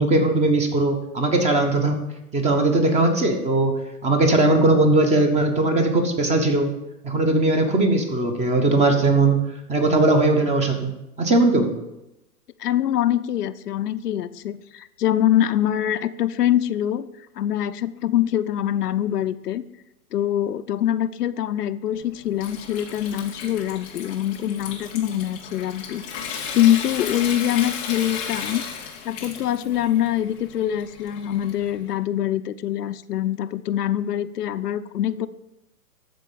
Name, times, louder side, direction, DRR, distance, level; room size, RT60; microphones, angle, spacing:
voice 1, 0.0-2.0 2.3-6.7 7.0-11.7, right 2 dB, 15° right, 6 dB, 1.1 m, -19 dB
voice 2, 12.6-17.1 17.4-19.6 20.1-26.0 26.5-28.6 29.0-35.3, left 11 dB, 80° left, 11 dB, 0.7 m, -24 dB
Water tap faucet / Sink (filling or washing) / Trickle dribble, 21.9-31.9, left 6 dB, 10° left, 0.3 m, -35 dB
13.0 x 4.5 x 7.0 m, 0.91 s
hypercardioid pair, 135°, 46 cm